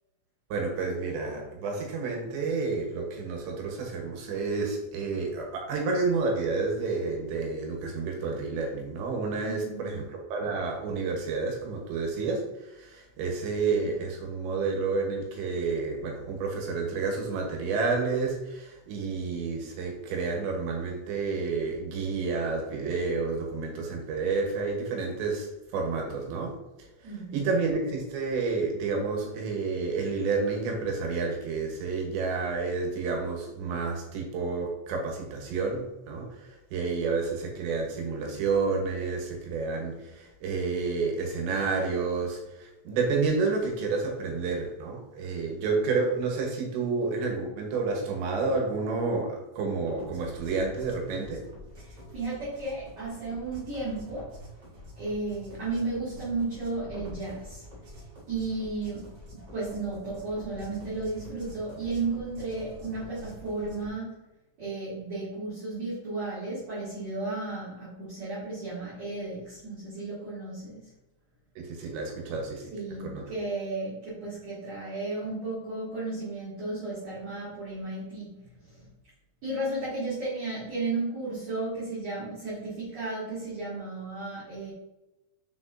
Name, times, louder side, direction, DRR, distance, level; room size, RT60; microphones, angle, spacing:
voice 1, 0.5-26.6 27.0-51.4 71.6-72.7 73.0-73.2, right 4 dB, 80° right, 1 dB, 3.5 m, -30 dB
voice 2, 9.4-9.9 27.0-27.4 51.8-54.3 55.0-57.6 58.3-59.1 59.3-64.2 64.6-70.9 72.7-78.4 78.6-78.9 79.4-84.7, right 3 dB, 45° right, -11 dB, 3.2 m, -34 dB
sound 1, 49.8-63.9, equal, 60° right, 1.1 m, -46 dB
7.0 x 6.0 x 2.7 m, 0.96 s
omnidirectional pair, 5.1 m